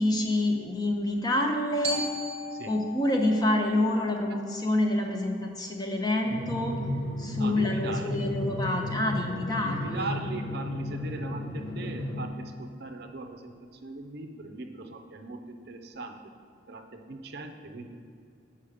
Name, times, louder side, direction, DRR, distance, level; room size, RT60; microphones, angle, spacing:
voice 1, 0.0-2.1 2.7-6.8 7.2-10.1, left 1 dB, 20° left, 2 dB, 0.7 m, -27 dB
Glockenspiel, 1.8-6.0, equal, 30° right, 0.9 m, -39 dB
Drum, 6.2-12.3, left 1 dB, 70° left, 1.5 m, -33 dB
voice 2, 7.4-8.3 9.6-16.3 16.7-17.9, right 2 dB, 55° right, 5 dB, 0.6 m, -39 dB
7.9 x 5.8 x 4.9 m, 2.4 s
head